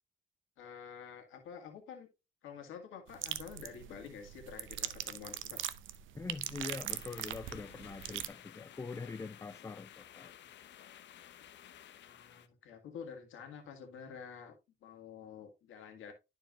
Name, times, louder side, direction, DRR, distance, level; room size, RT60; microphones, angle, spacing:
voice 1, 0.6-2.1 2.4-5.6 12.0-14.5 14.8-16.1, left 7 dB, 85° left, 1.8 m, -49 dB
sound 1, 3.1-8.3, right 12 dB, 75° right, 0.6 m, -41 dB
voice 2, 6.1-10.3, left 4 dB, 15° left, 0.3 m, -44 dB
sound 2, 6.9-12.5, left 10 dB, 65° left, 0.7 m, -54 dB
12.0 x 4.6 x 2.4 m
cardioid pair, 90°, 20 cm